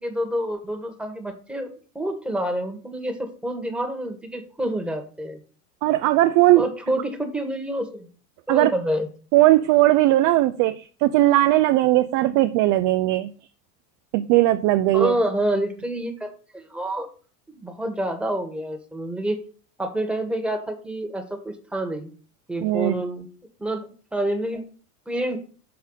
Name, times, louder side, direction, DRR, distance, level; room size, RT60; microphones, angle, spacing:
voice 1, 0.0-1.7 1.9-5.4 6.5-8.1 8.5-9.1 14.9-17.1 17.5-19.4 19.8-22.1 22.5-23.3 23.6-23.8 24.1-24.6 25.1-25.4, right 1 dB, ahead, 1.4 m, -28 dB
voice 2, 5.8-6.7 8.5-8.7 9.3-13.3 14.1-15.1 22.6-23.0, right 16 dB, 40° right, 0.5 m, -18 dB
6.4 x 4.1 x 5.5 m
hypercardioid pair, 95°, 47 cm